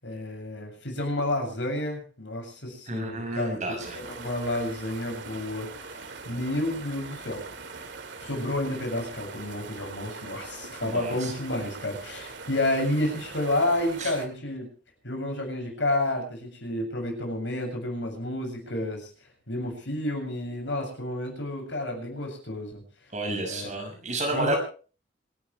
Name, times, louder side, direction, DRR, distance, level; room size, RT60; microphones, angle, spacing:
voice 1, 0.0-3.6 4.0-7.4 8.2-14.7 15.0-19.1 19.5-22.8 23.4-23.7 24.3-24.6, left 1 dB, 75° left, 3 dB, 7.5 m, -30 dB
voice 2, 2.9-4.0 10.8-11.3 14.0-14.1 23.1-24.6, right 2 dB, 40° right, 2 dB, 6.0 m, -31 dB
sound 1, 3.8-14.3, right 4 dB, 70° right, 2.3 m, -42 dB
26.5 x 14.0 x 3.4 m, 0.38 s
head